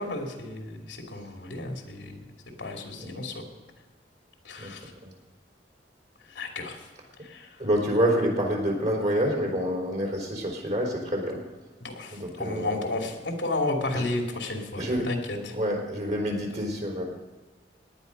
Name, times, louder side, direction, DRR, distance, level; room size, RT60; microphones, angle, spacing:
voice 1, 0.0-2.3 2.6-3.4 4.4-4.9 6.2-6.9 7.2-7.6 11.8-15.5, left 2 dB, 90° left, 2 dB, 2.8 m, -33 dB
voice 2, 7.6-11.4 12.1-12.7 14.8-15.0 15.5-17.0, equal, 45° right, 0 dB, 4.0 m, -27 dB
18.0 x 10.5 x 5.4 m, 1.3 s
head